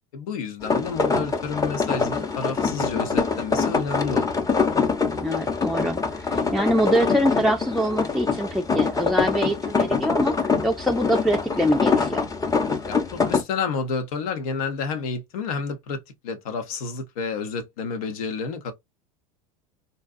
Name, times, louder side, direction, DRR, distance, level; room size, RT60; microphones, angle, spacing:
voice 1, 0.1-4.4 12.9-18.7, left 5 dB, 70° left, 1.0 m, -30 dB
sound 1, 0.6-13.4, left 4 dB, 20° left, 0.9 m, -24 dB
voice 2, 5.2-12.3, equal, ahead, 0.5 m, -24 dB
4.1 x 2.3 x 2.5 m
hypercardioid pair, 80°, 19 cm